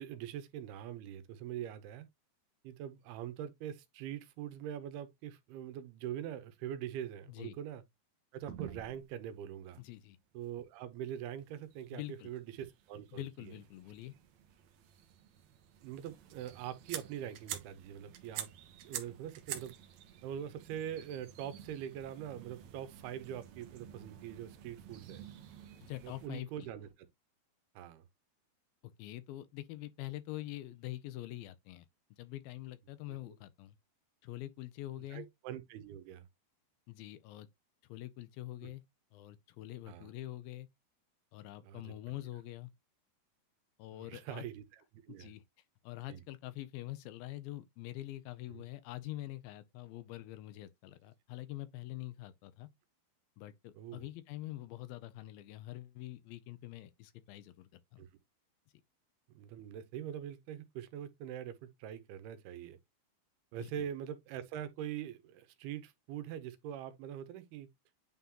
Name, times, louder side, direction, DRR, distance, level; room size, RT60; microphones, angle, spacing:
voice 1, 0.0-2.1 2.6-7.8 8.3-9.8 10.3-13.5 15.8-18.5 18.8-19.8 20.2-25.2 26.0-27.1 27.8-28.0 33.1-33.2 35.1-36.2 38.6-38.7 39.9-40.1 41.6-42.2 43.9-45.3 46.1-46.2 48.5-48.6 53.7-54.1 58.0-58.1 59.3-62.8 63.5-67.7, right 10 dB, 85° right, 2.8 m, -43 dB
sound 1, 8.4-9.2 9.7-9.8 10.2-10.3 11.1-26.3, right 10 dB, 70° right, 1.7 m, -49 dB
voice 2, 9.8-10.2 11.9-12.3 13.1-14.1 25.8-26.5 29.0-31.9 32.2-33.8 34.2-35.3 36.9-37.5 37.9-38.8 39.1-40.7 41.3-42.7 43.8-44.5 45.1-45.4 45.8-52.7 53.4-58.0 63.6-63.7, left 16 dB, 80° left, 2.3 m, -45 dB
sound 2, 21.6-26.9, right 3 dB, 50° right, 2.6 m, -65 dB
9.2 x 3.7 x 2.9 m
omnidirectional pair, 4.5 m